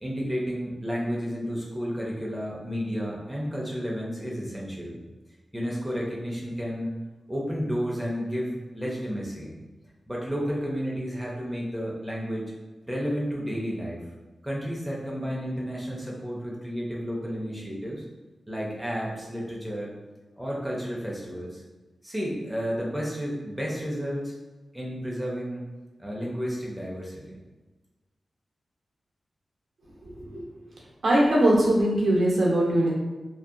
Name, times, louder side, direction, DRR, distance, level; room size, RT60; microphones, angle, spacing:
voice 1, 0.0-5.0 5.5-6.9 7.3-9.5 10.1-12.5 12.9-14.0 14.4-18.0 18.5-19.9 20.4-21.6 22.0-24.3 24.7-25.6 26.0-27.4, equal, 5° right, -5 dB, 0.4 m, -31 dB
voice 2, 30.0-30.5 31.0-32.9, right 1 dB, 65° right, -4 dB, 0.6 m, -21 dB
2.6 x 2.2 x 2.4 m, 1.2 s
wide cardioid pair, 180°, 0 cm